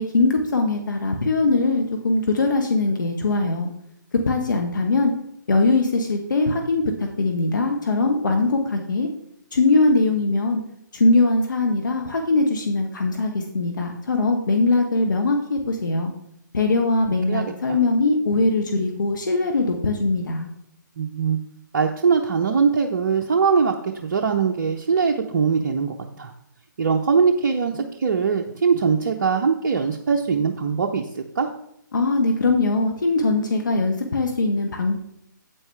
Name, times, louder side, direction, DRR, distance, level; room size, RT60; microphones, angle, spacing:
voice 1, 0.0-3.7 4.3-5.1 5.5-9.1 9.5-10.6 10.9-16.1 16.5-20.5 31.9-35.0, left 3 dB, 70° left, 3 dB, 1.3 m, -21 dB
voice 2, 17.3-17.8 21.0-21.4 21.7-26.3 26.8-31.5, right 5 dB, 50° right, 2 dB, 0.8 m, -22 dB
8.8 x 8.3 x 3.3 m, 0.76 s
figure-of-eight pair, 140°, 11 cm